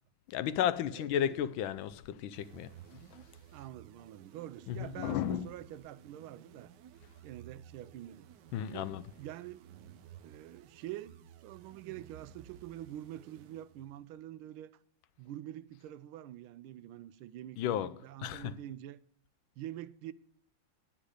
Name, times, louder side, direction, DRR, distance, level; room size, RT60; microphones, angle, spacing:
voice 1, 0.3-3.2 4.7-5.5 8.5-9.0 17.6-18.6, left 10 dB, 75° left, 1.3 m, -34 dB
voice 2, 0.9-1.4 3.5-6.7 7.2-8.3 8.7-9.7 10.2-14.7 15.2-19.0 19.6-20.1, right 13 dB, 90° right, 1.5 m, -46 dB
sound 1, 2.3-14.1, right 10 dB, 70° right, 1.1 m, -55 dB
10.0 x 9.0 x 4.9 m
omnidirectional pair, 2.3 m